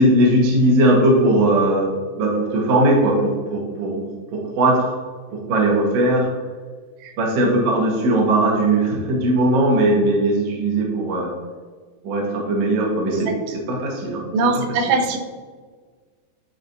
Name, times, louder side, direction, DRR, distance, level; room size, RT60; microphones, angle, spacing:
voice 1, 0.0-5.0 5.3-6.3 7.2-11.3 12.0-14.3, right 1 dB, 60° right, -1 dB, 1.7 m, -19 dB
voice 2, 14.3-15.2, right 3 dB, 85° right, 4 dB, 2.8 m, -21 dB
11.5 x 4.2 x 2.7 m, 1.5 s
omnidirectional pair, 4.6 m